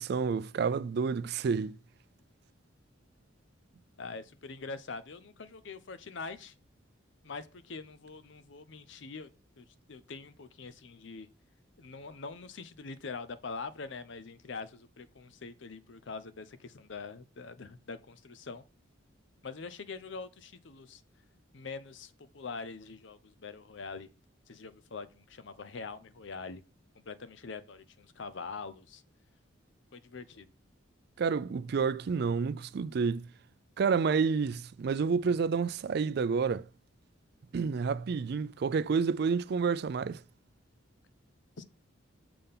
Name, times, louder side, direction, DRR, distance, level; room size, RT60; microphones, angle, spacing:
voice 1, 0.0-1.8 31.2-33.3 33.8-36.7 37.5-40.2, right 5 dB, 55° right, 0.3 m, -29 dB
voice 2, 4.0-6.5 7.2-9.3 9.6-11.3 11.8-18.6 19.4-21.0 21.5-24.1 24.5-26.6 27.1-29.0 29.9-30.5 41.6-41.7, left 4 dB, 65° left, 0.6 m, -44 dB
6.8 x 3.8 x 5.6 m
head